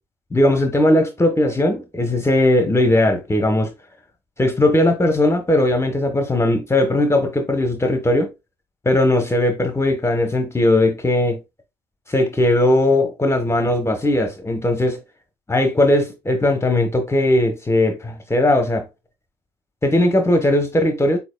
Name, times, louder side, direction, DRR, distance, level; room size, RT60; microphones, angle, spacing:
voice 1, 0.3-3.7 4.4-8.3 8.8-11.4 12.1-15.0 15.5-18.8 19.8-21.2, left 1 dB, 20° left, 1.0 m, -18 dB
6.2 x 2.8 x 2.3 m
hypercardioid pair, 55°, 14 cm